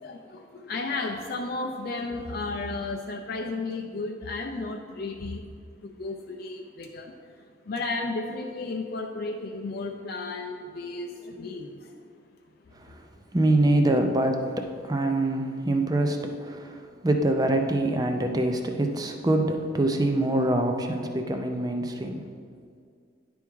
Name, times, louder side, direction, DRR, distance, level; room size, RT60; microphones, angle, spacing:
voice 1, 0.0-5.6 5.8-7.1 7.7-11.9, left 3 dB, 50° left, 2 dB, 0.4 m, -33 dB
voice 2, 13.3-22.2, right 1 dB, 20° right, 4 dB, 0.5 m, -25 dB
10.0 x 3.5 x 4.6 m, 2.2 s
head